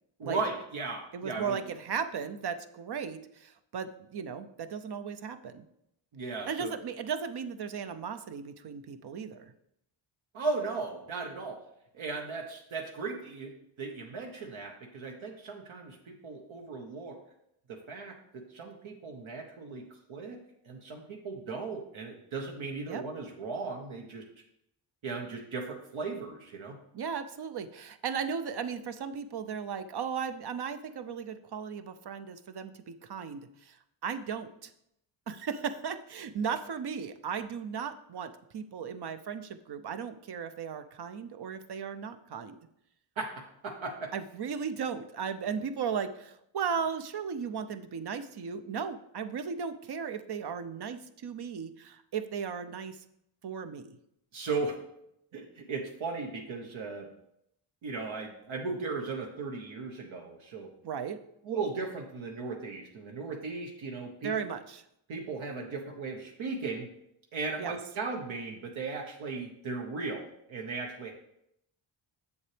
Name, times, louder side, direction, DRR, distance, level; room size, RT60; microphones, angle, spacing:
voice 1, 0.2-1.6 6.1-6.7 10.3-11.6 11.9-17.2 17.7-20.4 20.6-24.3 25.0-26.8 43.2-44.1 54.3-54.7 55.3-57.1 57.8-60.7 61.4-64.3 65.1-66.9 67.3-71.1, right 4 dB, 70° right, 1 dB, 1.0 m, -37 dB
voice 2, 1.1-5.6 6.5-9.5 22.9-23.0 26.9-34.7 35.3-42.6 44.1-53.0 53.4-54.0 60.8-61.2 64.2-64.8 67.6-67.8, right 6 dB, 55° right, 10 dB, 0.6 m, -36 dB
7.1 x 6.9 x 3.3 m, 0.77 s
cardioid pair, 85°, 49 cm